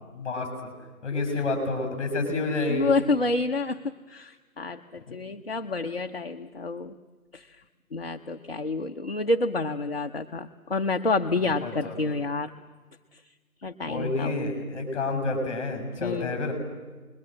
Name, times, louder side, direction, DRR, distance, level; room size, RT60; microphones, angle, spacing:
voice 1, 0.1-0.7 1.0-2.9 5.1-5.2 11.4-12.1 13.8-16.5, left 3 dB, 20° left, 4 dB, 6.5 m, -29 dB
voice 2, 2.7-6.9 7.3-7.5 7.9-12.5 13.6-14.4 16.0-16.3, left 3 dB, 40° left, 5 dB, 0.7 m, -28 dB
28.0 x 21.5 x 7.5 m, 1.3 s
figure-of-eight pair, 165°, 45 cm